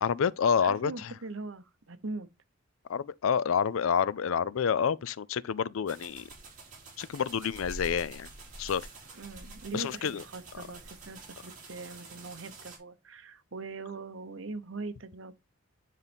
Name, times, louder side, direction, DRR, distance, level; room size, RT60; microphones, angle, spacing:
voice 1, 0.0-1.1 2.9-6.3 7.0-8.3 8.6-8.8 9.7-10.2, left 7 dB, 70° left, 0.4 m, -28 dB
voice 2, 0.6-2.3 9.1-15.3, right 3 dB, 65° right, 0.9 m, -41 dB
sound 1, 5.9-12.8, right 2 dB, 35° right, 3.1 m, -47 dB
9.7 x 4.0 x 3.5 m
head